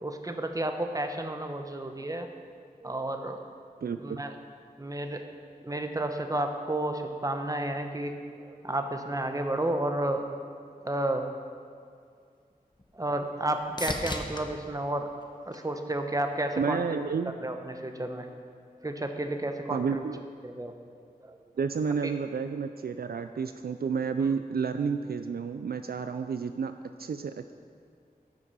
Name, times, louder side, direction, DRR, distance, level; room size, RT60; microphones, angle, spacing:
voice 1, 0.0-2.3 2.8-3.4 4.0-4.3 4.8-5.2 5.6-8.1 8.5-10.2 10.8-11.3 12.9-15.1 15.5-16.8 17.4-18.3 18.8-20.0 20.4-20.7 21.2-21.4 22.0-22.1 24.2-24.3, right 1 dB, 20° right, 5 dB, 1.0 m, -31 dB
voice 2, 3.8-4.2 16.6-17.3 19.7-20.2 21.6-27.5, right 5 dB, 70° right, 9 dB, 0.4 m, -31 dB
sound 1, 12.0-16.3 16.8-17.4 25.2-25.3, left 1 dB, 25° left, 1.0 m, -40 dB
13.0 x 6.0 x 5.5 m, 2.2 s
cardioid pair, 45°, 16 cm